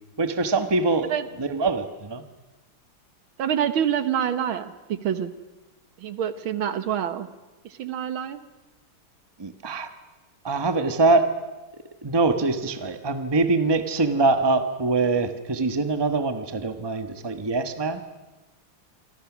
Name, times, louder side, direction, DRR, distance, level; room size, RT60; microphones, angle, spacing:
voice 1, 0.2-1.1 1.4-2.2 9.4-9.9 10.4-11.3 12.0-18.0, right 3 dB, 15° right, 8 dB, 1.1 m, -23 dB
voice 2, 3.4-5.3 6.0-7.3 7.7-8.4, right 9 dB, 70° right, 12 dB, 1.9 m, -26 dB
28.0 x 25.5 x 6.2 m, 1.1 s
omnidirectional pair, 2.4 m